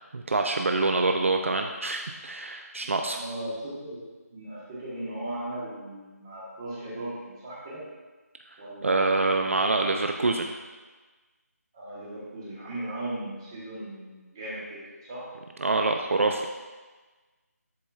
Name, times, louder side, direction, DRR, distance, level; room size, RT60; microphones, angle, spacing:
voice 1, 0.1-3.2 8.8-10.5 15.6-16.5, right 3 dB, 50° right, 4 dB, 0.4 m, -25 dB
voice 2, 3.0-4.0 4.3-7.8 8.6-9.7 11.7-15.3, right 1 dB, 15° right, -8 dB, 1.1 m, -37 dB
10.5 x 4.2 x 2.3 m, 1.3 s
figure-of-eight pair, 175°, 9 cm